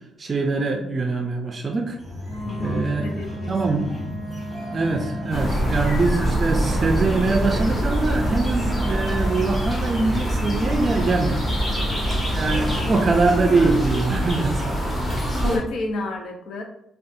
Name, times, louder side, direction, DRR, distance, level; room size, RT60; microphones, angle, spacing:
voice 1, 0.2-2.0 2.6-3.1 3.5-4.2 4.7-11.6 12.3-15.0, right 3 dB, 35° right, 4 dB, 0.4 m, -23 dB
sound 1, 2.0-8.6, left 1 dB, ahead, 1.2 m, -35 dB
Wind instrument woodwind instrument, 2.2-13.3, equal, 50° left, 0.9 m, -37 dB
voice 2, 2.4-3.8 11.7-11.8 15.5-16.6, left 2 dB, 65° left, 3 dB, 0.6 m, -32 dB
sound 2, 5.3-15.6, equal, 25° left, 1.3 m, -24 dB
3.7 x 2.3 x 2.5 m, 0.77 s
cardioid pair, 90°, 0 cm